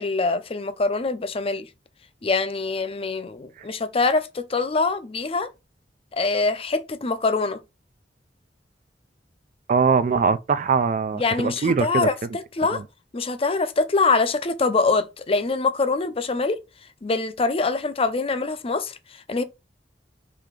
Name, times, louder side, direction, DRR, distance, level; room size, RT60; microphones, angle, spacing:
voice 1, 0.0-1.7 2.2-5.5 6.1-7.6 11.1-12.8 13.1-16.6 17.0-19.4, left 3 dB, 30° left, 0.5 m, -24 dB
voice 2, 9.7-12.1 12.7-12.8, right 5 dB, 45° right, 0.3 m, -21 dB
3.8 x 2.8 x 4.8 m
head